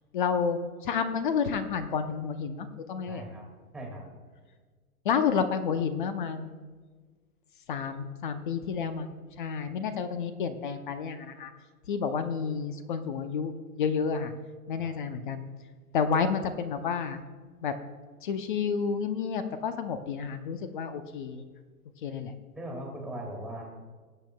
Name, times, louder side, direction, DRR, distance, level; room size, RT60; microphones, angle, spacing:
voice 1, 0.1-3.2 5.0-6.6 7.7-11.5 11.9-14.3 14.7-15.5 15.9-17.2 17.6-17.7 18.2-21.4 22.0-22.3, left 6 dB, 35° left, 10 dB, 0.6 m, -30 dB
voice 2, 3.1-3.4 3.7-4.0 14.8-14.9 22.5-23.6, right 1 dB, ahead, 0 dB, 2.0 m, -39 dB
19.5 x 8.4 x 2.2 m, 1.5 s
hypercardioid pair, 145°, 45 cm